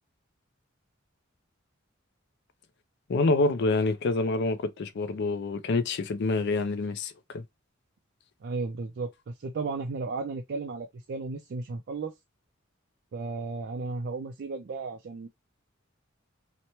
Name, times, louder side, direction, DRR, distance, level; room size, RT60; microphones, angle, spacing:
voice 1, 3.1-7.4, left 3 dB, 55° left, 0.4 m, -27 dB
voice 2, 8.4-12.1 13.1-15.3, right 3 dB, 55° right, 0.4 m, -34 dB
2.9 x 2.1 x 2.8 m
head